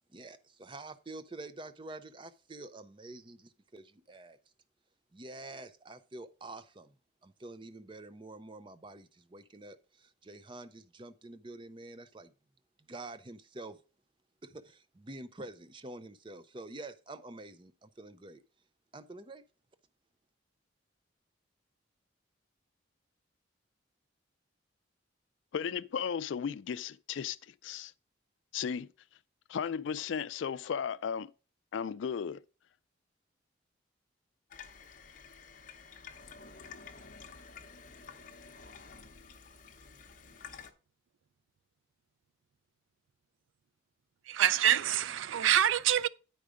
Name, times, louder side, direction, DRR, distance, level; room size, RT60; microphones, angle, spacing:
voice 1, 0.1-4.4 5.1-6.9 7.2-12.3 12.8-13.8 14.4-18.4 18.9-19.4, right 2 dB, 25° right, 0.5 m, -47 dB
voice 2, 25.5-27.9 28.5-28.9 29.5-31.3 31.7-32.4, left 7 dB, 70° left, 0.3 m, -35 dB
Water tap faucet / Sink (filling or washing), 34.5-40.7, left 5 dB, 40° left, 0.9 m, -51 dB
voice 3, 44.3-46.1, right 10 dB, 80° right, 0.4 m, -26 dB
9.2 x 4.9 x 5.0 m
head